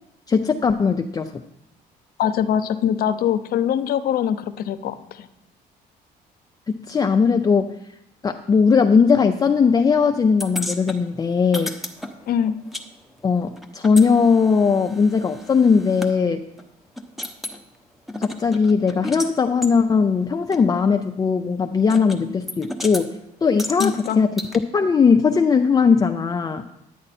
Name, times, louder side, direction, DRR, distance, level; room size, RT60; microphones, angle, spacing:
voice 1, 0.3-1.4 6.7-7.7 8.2-11.7 13.2-16.4 18.2-23.1 23.4-24.4 24.7-26.6, left 5 dB, 20° left, 5 dB, 0.4 m, -19 dB
voice 2, 2.2-5.3 12.3-12.6 23.8-24.2, left 9 dB, 60° left, 11 dB, 0.7 m, -23 dB
sound 1, 10.4-12.9 13.1-16.1 16.6-16.7 17.0-17.6 18.1-19.3 19.6-19.7 20.5-20.6 21.9-22.2 22.5-23.1 23.6-24.6, left 1 dB, ahead, 0.9 m, -33 dB
10.0 x 9.7 x 4.3 m, 0.83 s
cardioid pair, 110°, 17 cm